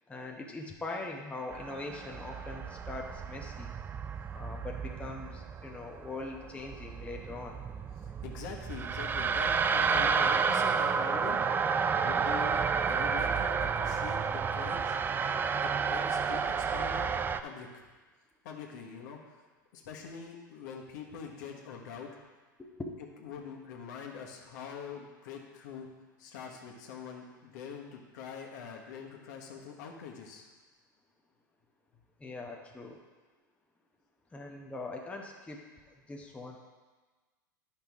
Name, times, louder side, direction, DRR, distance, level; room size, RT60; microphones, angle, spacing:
voice 1, 0.1-3.7 4.3-7.6 22.6-22.9 32.2-33.0 34.3-35.6 36.1-36.6, left 2 dB, 10° left, 1 dB, 0.9 m, -41 dB
sound 1, 1.5-17.4, right 6 dB, 20° right, 0.3 m, -31 dB
voice 2, 8.0-15.0 15.9-17.1 17.4-17.9 18.4-19.5 19.7-22.1 23.2-25.9 26.2-30.5, left 6 dB, 60° left, 1 dB, 1.3 m, -44 dB
10.5 x 5.7 x 3.6 m, 1.3 s
hypercardioid pair, 95°, 11 cm